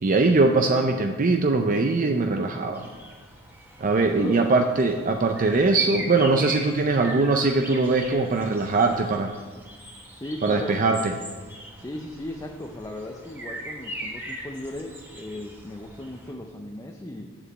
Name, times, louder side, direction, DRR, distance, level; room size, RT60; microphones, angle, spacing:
voice 1, 0.0-2.8 3.8-9.3 10.4-11.1, right 3 dB, 40° right, 5 dB, 0.5 m, -21 dB
sound 1, 2.7-16.3, right 1 dB, 10° right, 1.4 m, -41 dB
voice 2, 10.1-10.8 11.8-17.4, left 1 dB, 15° left, 2 dB, 0.5 m, -36 dB
7.2 x 7.0 x 7.8 m, 1.5 s
head